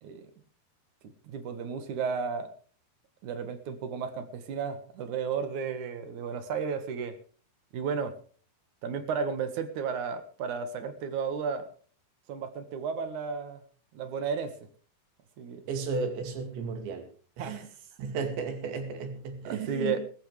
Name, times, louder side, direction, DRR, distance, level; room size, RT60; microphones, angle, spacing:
voice 1, 1.2-2.5 3.2-7.2 7.7-8.2 8.8-11.7 12.3-13.6 13.9-14.6 15.4-15.6 17.4-17.6 19.4-20.0, right 6 dB, 55° right, 9 dB, 2.5 m, -33 dB
voice 2, 15.7-17.1 17.4-17.6 18.0-20.0, right 5 dB, 85° right, 6 dB, 4.7 m, -34 dB
19.0 x 15.0 x 3.3 m, 0.42 s
omnidirectional pair, 5.0 m